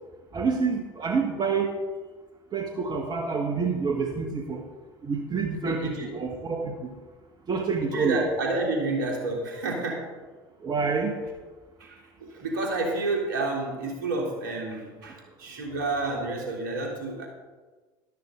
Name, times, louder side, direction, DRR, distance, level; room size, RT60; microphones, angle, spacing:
voice 1, 0.3-1.7 2.5-4.6 5.0-6.9 7.5-8.2 10.6-11.1, right 5 dB, 35° right, 3 dB, 1.6 m, -27 dB
voice 2, 5.6-6.2 7.8-10.1 11.8-17.3, right 2 dB, 65° right, -1 dB, 3.3 m, -30 dB
13.0 x 12.5 x 3.9 m, 1.3 s
figure-of-eight pair, 65°, 12 cm